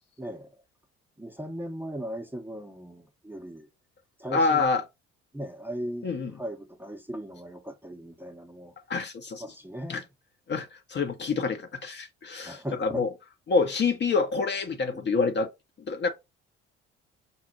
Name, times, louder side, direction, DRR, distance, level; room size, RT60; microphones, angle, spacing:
voice 1, 0.2-0.5 1.2-3.7 4.2-4.7 5.3-8.7 9.4-10.1 12.4-13.0 14.8-15.2, equal, 5° right, 0.7 m, -38 dB
voice 2, 4.3-4.8 6.0-6.3 8.9-9.5 9.9-10.0 10.5-13.1 13.5-15.5 15.9-16.1, left 4 dB, 30° left, 0.6 m, -27 dB
5.3 x 2.0 x 2.7 m
figure-of-eight pair, 55°, 35 cm